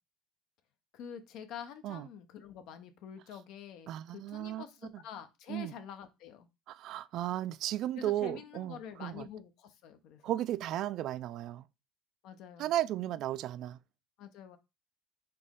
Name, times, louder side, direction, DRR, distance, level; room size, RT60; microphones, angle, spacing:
voice 1, 0.9-6.5 7.9-10.3 12.2-12.7 14.2-14.6, left 8 dB, 65° left, 0.7 m, -47 dB
voice 2, 3.9-4.7 4.9-5.0 5.5-5.7 6.7-9.3 10.2-11.6 12.6-13.8, right 13 dB, 60° right, 0.3 m, -35 dB
4.2 x 3.0 x 3.6 m
supercardioid pair, 105°, 0 cm